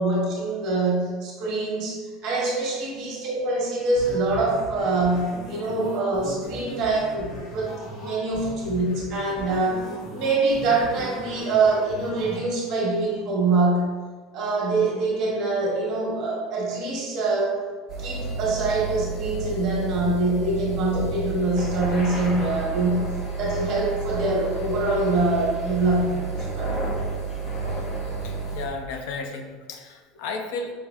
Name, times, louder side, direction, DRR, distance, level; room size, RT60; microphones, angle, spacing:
voice 1, 0.0-13.9 14.3-17.6 18.0-23.1 23.4-26.7, right 2 dB, 45° right, -2 dB, 1.1 m, -24 dB
sound 1, 4.0-12.4, right 1 dB, 50° left, 1.0 m, -38 dB
sound 2, 17.9-28.7, right 3 dB, 30° left, 0.7 m, -30 dB
voice 2, 28.0-30.7, left 3 dB, 70° left, 5 dB, 0.5 m, -34 dB
5.1 x 3.3 x 2.3 m, 1.5 s
cardioid pair, 165°, 0 cm